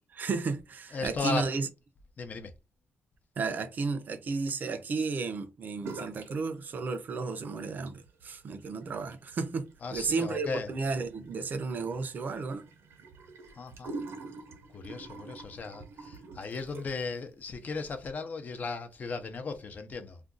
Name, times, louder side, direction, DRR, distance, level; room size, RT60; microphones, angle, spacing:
voice 1, 0.1-1.7 3.4-12.6, right 4 dB, 45° right, 0.5 m, -33 dB
voice 2, 0.9-1.5 2.2-2.5 9.8-10.7 13.5-13.9 14.7-20.2, left 4 dB, 45° left, 0.6 m, -36 dB
sound 1, 5.8-6.4 6.6-7.3 7.7-17.1, right 3 dB, 85° right, 0.7 m, -46 dB
2.5 x 2.3 x 3.6 m
wide cardioid pair, 140°, 4 cm